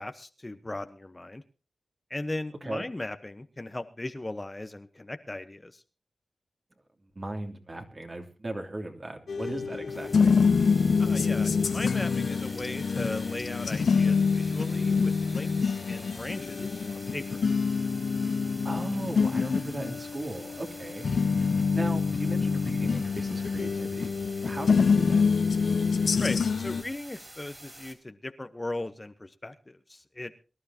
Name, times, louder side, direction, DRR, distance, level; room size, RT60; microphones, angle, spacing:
voice 1, 0.0-1.4 2.1-5.8 11.0-17.4 26.2-30.3, left 2 dB, 25° left, 10 dB, 1.1 m, -38 dB
voice 2, 7.0-10.3 18.6-21.1 21.7-24.1 24.4-25.2, right 1 dB, 40° right, 3 dB, 2.9 m, -37 dB
sound 1, 9.3-26.8, left 5 dB, 75° left, 0.9 m, -26 dB
sound 2, 9.9-27.9, right 1 dB, 20° right, 3.9 m, -48 dB
23.5 x 12.0 x 2.9 m, 0.33 s
cardioid pair, 50°, 0 cm